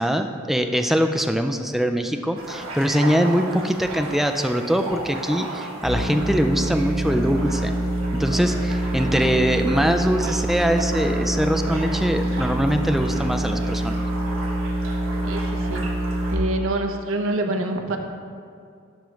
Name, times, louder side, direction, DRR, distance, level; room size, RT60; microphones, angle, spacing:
voice 1, 0.0-7.7 8.1-14.0, equal, ahead, 6 dB, 0.3 m, -22 dB
sound 1, 2.3-16.4, right 2 dB, 85° right, 1.5 m, -35 dB
sound 2, 5.8-16.3, right 1 dB, 65° left, 2.0 m, -25 dB
voice 2, 15.2-15.8 16.3-18.0, right 2 dB, 70° right, 4 dB, 0.7 m, -26 dB
11.5 x 5.1 x 3.2 m, 2.3 s
head